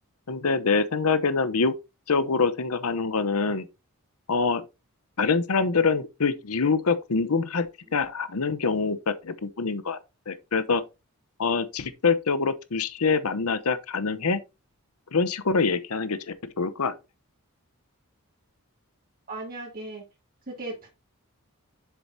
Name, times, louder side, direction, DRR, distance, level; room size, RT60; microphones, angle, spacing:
voice 1, 0.3-1.7 2.1-3.7 4.3-4.6 5.2-10.0 10.3-10.8 11.4-14.4 15.1-16.9, left 4 dB, 75° left, 0.8 m, -25 dB
voice 2, 19.3-20.0 20.5-20.9, right 2 dB, 40° right, 2.4 m, -36 dB
7.3 x 7.0 x 2.7 m
head